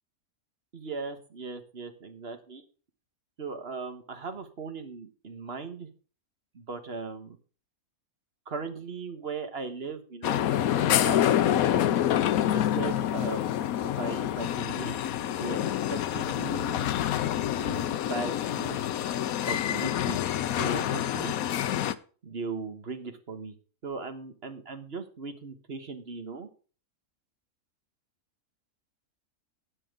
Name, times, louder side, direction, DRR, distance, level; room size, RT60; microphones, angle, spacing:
voice 1, 0.7-2.6 3.4-5.9 6.5-7.4 8.5-11.8 12.5-13.6 14.0-16.9 17.4-18.8 19.4-20.2 20.6-21.3 22.2-23.5 23.8-26.5, right 4 dB, 45° right, 7 dB, 1.6 m, -38 dB
sound 1, 10.2-21.9, left 11 dB, 80° left, 1.1 m, -27 dB
12.5 x 8.9 x 3.8 m, 0.38 s
omnidirectional pair, 1.5 m